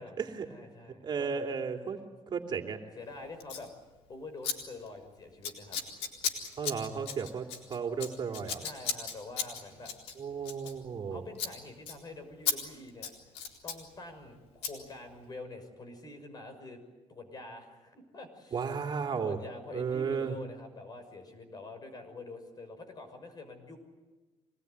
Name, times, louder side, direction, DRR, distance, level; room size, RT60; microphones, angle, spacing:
voice 1, 0.0-1.4 3.0-3.7 4.1-5.8 7.2-7.3 8.6-9.9 10.6-10.7 11.1-13.1 13.6-16.8 17.1-18.6 19.2-23.8, left 2 dB, 40° left, 7 dB, 6.2 m, -46 dB
voice 2, 1.0-2.0 2.3-2.8 6.6-7.4 7.7-8.6 10.2-11.2 18.5-19.4 19.7-20.3, right 6 dB, 45° right, 3 dB, 3.0 m, -34 dB
Scissors, 3.4-3.7 4.4-4.6 4.8-5.1 5.4-11.1 11.3-11.5 11.9-12.0 12.5-12.6 12.9-13.8 14.6-14.7, left 7 dB, 90° left, 4.1 m, -36 dB
25.5 x 20.0 x 9.7 m, 1.2 s
cardioid pair, 95°, 10 cm